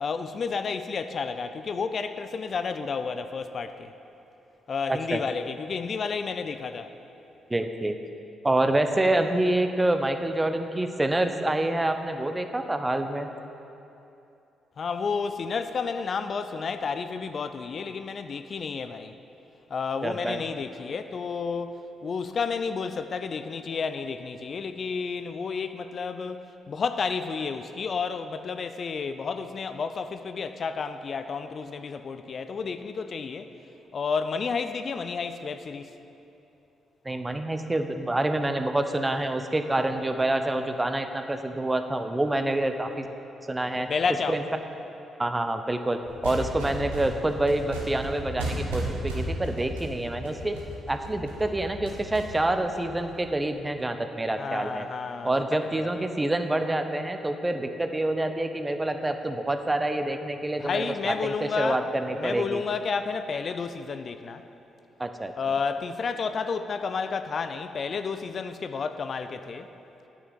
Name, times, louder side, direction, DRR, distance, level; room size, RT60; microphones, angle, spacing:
voice 1, 0.0-3.9 4.7-6.9 14.8-19.1 19.7-33.5 33.9-35.9 43.7-44.4 54.4-56.0 60.6-61.8 62.1-64.4 65.4-69.7, left 5 dB, 50° left, 10 dB, 0.4 m, -31 dB
voice 2, 4.9-5.2 7.5-8.0 8.4-13.3 20.0-20.4 37.0-43.1 43.5-43.9 44.3-44.4 45.2-50.6 50.9-54.9 55.2-62.6 65.0-65.3, right 1 dB, 20° right, 7 dB, 0.8 m, -27 dB
sound 1, 46.0-53.5, right 1 dB, 85° right, 1.4 m, -35 dB
9.6 x 6.1 x 7.0 m, 2.8 s
hypercardioid pair, 45°, 0 cm